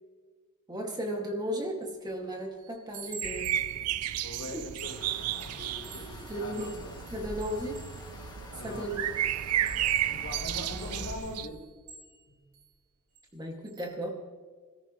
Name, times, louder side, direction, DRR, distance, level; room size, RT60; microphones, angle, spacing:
voice 1, 0.7-3.5 4.5-4.6 6.3-7.8 8.6-9.0 13.3-14.2, right 1 dB, 20° right, 1 dB, 2.1 m, -35 dB
Chime, 1.8-2.1 2.5-8.8 9.3-12.7 13.1-13.4 13.6-14.0, right 5 dB, 65° right, 5.0 m, -49 dB
sound 1, 3.2-11.5, right 12 dB, 85° right, 0.5 m, -33 dB
voice 2, 4.2-7.0 8.5-9.2 10.0-11.6 12.2-12.4, left 1 dB, 60° left, -2 dB, 3.9 m, -42 dB
sound 2, 4.8-11.1, left 1 dB, 20° left, 2.2 m, -45 dB
26.0 x 14.0 x 3.1 m, 1.5 s
head